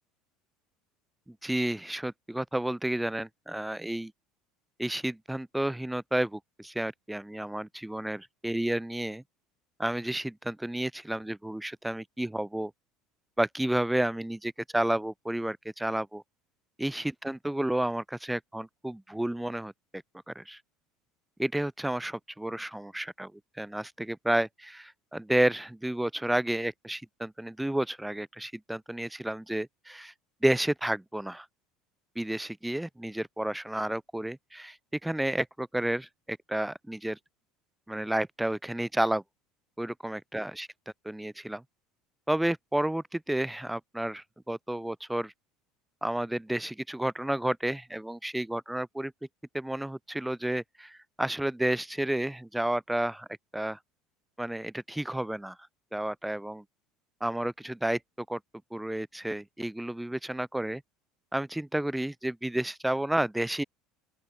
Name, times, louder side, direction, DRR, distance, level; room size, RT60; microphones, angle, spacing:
voice 1, 1.3-4.1 4.8-9.2 9.8-12.7 13.4-16.2 16.8-19.7 20.3-20.6 21.4-30.1 30.4-31.5 32.2-34.8 35.0-37.2 37.9-39.2 39.8-40.7 41.0-41.6 42.3-45.3 46.0-49.1 49.5-53.3 53.5-53.8 54.4-55.6 55.9-56.6 57.2-58.4 58.7-60.8 61.3-63.6, right 1 dB, 5° right, 5.5 m, -31 dB
open air
hypercardioid pair, 80°, 0 cm